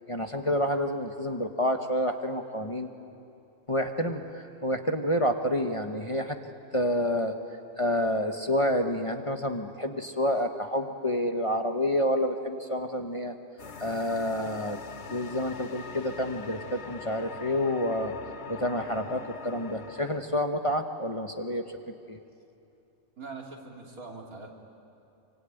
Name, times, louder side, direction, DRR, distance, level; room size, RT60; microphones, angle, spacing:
voice 1, 0.1-2.9 3.7-6.4 6.7-7.3 7.8-13.3 13.8-14.8 15.1-18.1 18.5-22.2, equal, 25° left, 4 dB, 1.1 m, -29 dB
sound 1, 13.6-20.2, left 5 dB, 50° left, 1.4 m, -42 dB
voice 2, 23.2-24.5, right 3 dB, 85° right, 0 dB, 3.4 m, -42 dB
25.5 x 25.0 x 9.0 m, 2.7 s
omnidirectional pair, 1.5 m